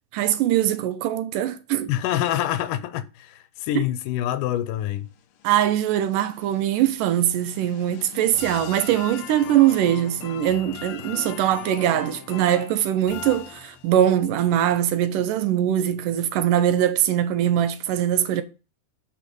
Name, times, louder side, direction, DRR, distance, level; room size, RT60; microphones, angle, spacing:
voice 1, 0.1-1.9 3.8-3.9 5.4-18.4, right 11 dB, 85° right, 2.4 m, -22 dB
voice 2, 1.9-5.1, left 12 dB, 90° left, 2.2 m, -26 dB
sound 1, 5.2-14.1, left 10 dB, 70° left, 1.7 m, -40 dB
9.1 x 4.9 x 5.4 m
omnidirectional pair, 3.7 m